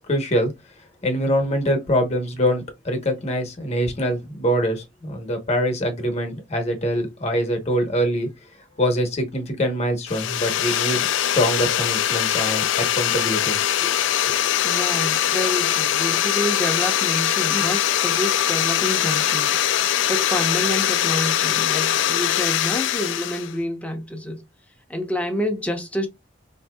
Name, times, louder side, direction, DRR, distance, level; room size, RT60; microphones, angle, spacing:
voice 1, 0.1-0.5 1.0-8.3 8.8-13.9, equal, 35° left, 0.9 m, -24 dB
sound 1, 10.1-23.5, left 11 dB, 85° left, 0.3 m, -22 dB
voice 2, 14.6-19.7 20.1-24.4 24.9-26.1, left 1 dB, 10° left, 0.6 m, -28 dB
3.8 x 2.7 x 2.2 m
head